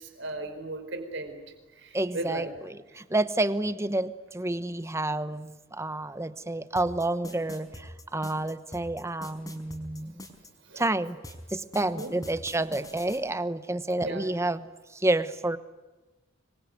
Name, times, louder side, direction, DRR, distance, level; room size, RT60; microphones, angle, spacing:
voice 1, 0.0-1.4 1.8-2.5 10.7-10.8 11.8-12.1 14.0-14.3, right 2 dB, 60° right, 6 dB, 4.8 m, -36 dB
voice 2, 1.9-10.2 10.8-11.2 11.5-15.6, right 2 dB, 15° right, 13 dB, 1.0 m, -29 dB
sound 1, 6.8-10.5 11.2-13.2, left 1 dB, 20° left, 4.6 m, -43 dB
26.0 x 23.0 x 9.5 m, 1.2 s
head